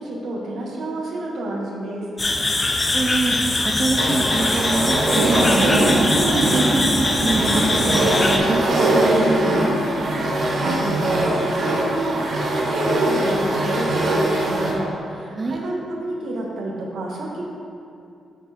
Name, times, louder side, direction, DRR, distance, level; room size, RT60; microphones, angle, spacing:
voice 1, 0.0-2.1 10.2-17.4, right 1 dB, 75° right, -2 dB, 1.4 m, -30 dB
sound 1, 2.2-8.4, left 2 dB, 25° left, 0.6 m, -22 dB
voice 2, 2.9-6.8 7.2-9.8 15.4-15.6, right 2 dB, 30° right, 1 dB, 0.5 m, -25 dB
sound 2, 4.0-14.7, right 1 dB, 55° right, 1.2 m, -22 dB
sound 3, 5.1-14.4, right 3 dB, 90° right, 0.8 m, -28 dB
8.9 x 4.5 x 4.3 m, 2.6 s
cardioid pair, 115°, 0 cm